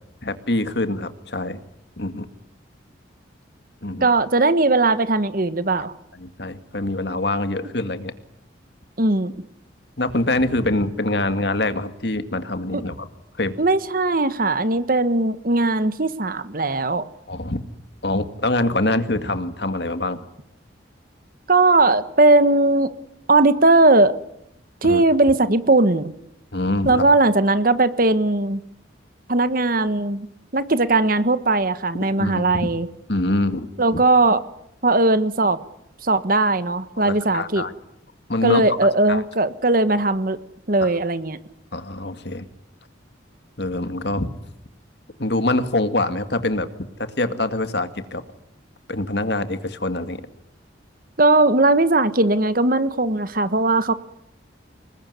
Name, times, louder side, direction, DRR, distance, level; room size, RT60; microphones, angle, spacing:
voice 1, 0.2-1.6 2.0-2.3 3.8-4.1 5.8-5.9 6.2-8.1 10.0-13.1 13.4-13.5 17.3-17.6 18.0-20.2 24.8-25.0 26.5-27.0 32.2-32.7 33.1-33.7 33.9-34.0 37.0-37.7 38.3-38.6 39.1-39.2 40.8-40.9 41.7-42.5 43.6-44.3 45.2-46.7 47.0-48.2 48.9-50.2, left 2 dB, 60° left, 10 dB, 2.1 m, -24 dB
voice 2, 4.0-5.9 9.0-9.3 12.7-12.8 13.6-17.0 21.5-22.9 23.3-24.2 24.8-26.1 26.8-28.6 29.3-30.3 30.5-32.9 33.8-34.4 34.8-35.6 36.0-37.6 38.4-40.4 40.7-41.4 51.2-53.9, right 2 dB, 50° right, 13 dB, 1.4 m, -18 dB
26.5 x 20.5 x 9.7 m, 0.80 s
head